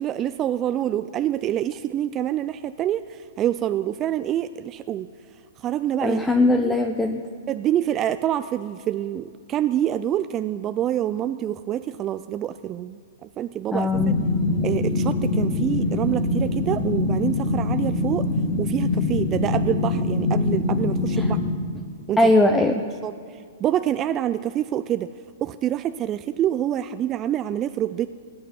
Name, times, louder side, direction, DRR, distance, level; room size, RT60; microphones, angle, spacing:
voice 1, 0.0-5.1 5.6-6.2 6.6-6.8 7.5-14.1 14.6-18.3 18.6-21.4 22.1-22.3 23.0-23.1 23.6-25.1 25.4-28.1, right 11 dB, 30° right, 11 dB, 0.4 m, -26 dB
voice 2, 6.0-7.2 13.7-14.1 21.2-21.3 22.2-22.8, left 2 dB, 10° left, 5 dB, 0.8 m, -20 dB
sound 1, 13.9-21.5, left 3 dB, 45° left, 2.9 m, -24 dB
17.5 x 6.8 x 9.6 m, 2.2 s
hypercardioid pair, 120°, 0 cm